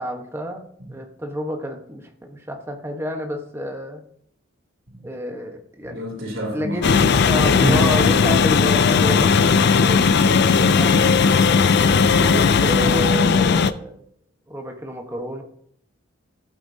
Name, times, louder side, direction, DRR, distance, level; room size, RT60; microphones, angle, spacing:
voice 1, 0.0-4.0 5.0-6.0 6.5-6.8 7.3-11.2 12.2-14.0 14.5-15.4, equal, 15° right, 1.2 m, -30 dB
voice 2, 5.8-7.9 9.1-9.4 12.1-12.5, right 1 dB, 80° right, 3.2 m, -28 dB
sound 1, 6.8-13.7, left 5 dB, 55° left, 0.4 m, -16 dB
15.0 x 8.3 x 2.8 m
head